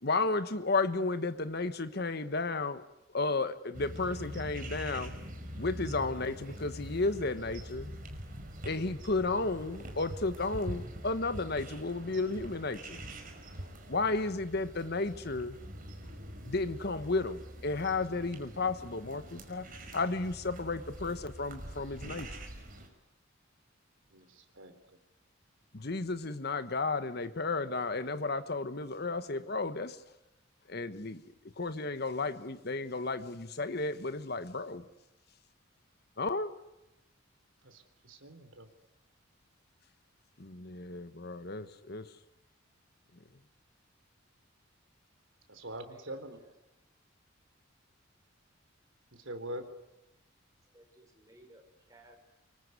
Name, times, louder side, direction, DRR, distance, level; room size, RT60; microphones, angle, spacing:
voice 1, 0.0-2.9 3.1-5.1 5.6-7.9 8.6-13.0 13.9-15.6 16.4-19.7 19.9-22.3 25.7-30.0 30.7-31.2 31.6-34.9 36.2-36.5 40.4-42.2, left 3 dB, 55° left, 1.3 m, -33 dB
sound 1, 3.7-22.9, equal, 45° right, 5.3 m, -44 dB
voice 2, 24.1-24.7 37.6-38.7 45.5-46.4 49.1-49.7, right 1 dB, 75° right, 3.8 m, -44 dB
voice 3, 50.7-52.2, right 1 dB, 15° right, 5.7 m, -58 dB
25.5 x 24.0 x 9.7 m
head